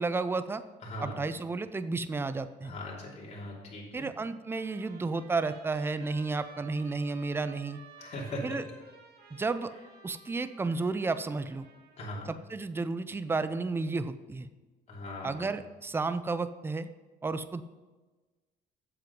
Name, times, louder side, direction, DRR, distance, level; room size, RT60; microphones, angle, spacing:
voice 1, 0.0-0.6 1.0-2.8 3.9-7.8 8.4-8.6 9.3-9.7 10.0-11.7 12.3-14.5 15.2-16.9 17.2-17.6, right 3 dB, 15° right, 13 dB, 0.5 m, -32 dB
voice 2, 0.8-1.2 2.6-4.1 8.0-8.6 12.0-12.3 14.9-15.5, left 1 dB, 40° left, -4 dB, 3.1 m, -39 dB
Trumpet, 4.5-12.2, right 3 dB, 70° right, 1.8 m, -55 dB
7.8 x 7.5 x 5.2 m, 1.2 s
cardioid pair, 110°, 17 cm